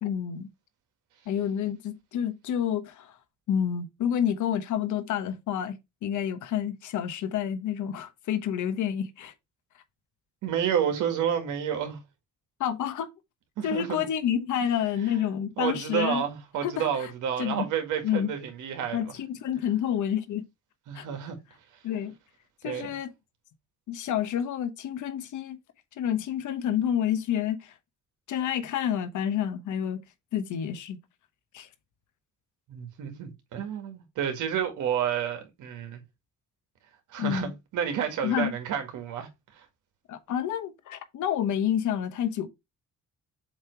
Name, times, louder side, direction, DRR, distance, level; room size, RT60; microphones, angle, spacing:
voice 1, 0.0-0.5 1.3-3.1 3.5-9.3 12.6-13.1 13.6-16.2 16.6-17.1 17.4-17.7 18.0-18.3 18.9-20.4 20.9-21.0 21.8-22.1 22.6-23.1 23.9-25.6 26.0-27.7 28.3-30.0 30.3-31.0 31.5-31.7 37.2-37.5 38.2-38.5 40.1-42.5, left 9 dB, 75° left, 1.0 m, -29 dB
voice 2, 10.4-12.0 13.6-14.0 15.0-15.2 15.6-19.1 20.9-21.4 22.6-22.9 32.7-36.0 37.1-39.7, right 8 dB, 85° right, 1.8 m, -30 dB
7.3 x 2.9 x 4.5 m
cardioid pair, 90°, 30 cm